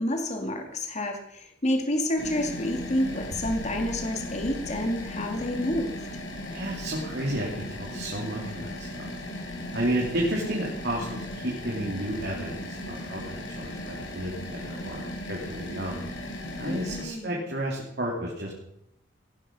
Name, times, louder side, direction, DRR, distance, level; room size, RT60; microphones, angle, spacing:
voice 1, 0.0-6.0 16.7-17.4, left 1 dB, 40° left, 4 dB, 2.3 m, -29 dB
sound 1, 2.2-17.0, left 1 dB, 90° left, 4.5 m, -37 dB
voice 2, 6.5-9.1 9.7-16.0 16.6-18.5, right 1 dB, 60° right, -2 dB, 3.3 m, -32 dB
18.0 x 11.0 x 5.6 m, 0.77 s
head